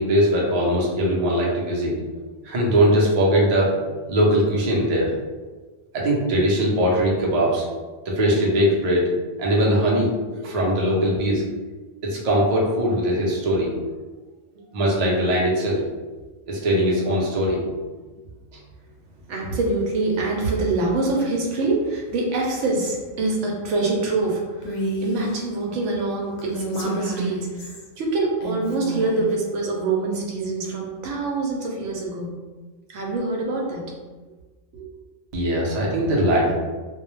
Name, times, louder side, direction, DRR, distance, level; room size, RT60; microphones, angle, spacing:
voice 1, 0.0-1.9 2.4-3.8 4.1-5.1 5.9-7.6 8.0-9.1 9.4-10.1 10.4-11.4 12.0-13.7 14.7-15.8 16.5-17.6 35.3-36.5, equal, 45° right, -4 dB, 0.5 m, -20 dB
voice 2, 19.3-32.3 32.9-33.9 34.7-34.9, right 3 dB, 80° right, -1 dB, 0.9 m, -25 dB
Female speech woman speaking, 24.6-25.3 26.4-27.9 28.4-29.3, right 1 dB, 60° left, 0.6 m, -30 dB
2.2 x 2.1 x 3.0 m, 1.3 s
omnidirectional pair, 1.2 m